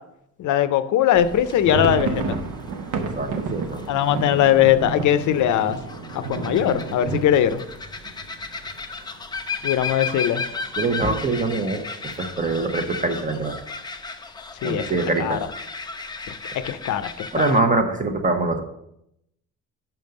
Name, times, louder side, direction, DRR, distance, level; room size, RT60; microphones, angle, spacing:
voice 1, 0.4-2.4 3.9-5.8 6.1-7.6 9.6-10.4 14.6-14.8 15.2-15.4 16.6-17.5, left 10 dB, 70° left, 12 dB, 0.6 m, -20 dB
sound 1, 1.1-17.6, left 4 dB, 15° left, 0.5 m, -35 dB
sound 2, 1.3-9.0 9.3-9.5 9.7-9.9 10.5-11.0, right 4 dB, 90° right, 0.9 m, -31 dB
voice 2, 2.9-3.8 9.8-10.2 10.8-11.8 12.2-13.6 14.6-15.4 17.3-18.6, right 3 dB, 25° right, 6 dB, 0.8 m, -24 dB
5.8 x 5.3 x 6.4 m, 0.80 s
cardioid pair, 145°, 31 cm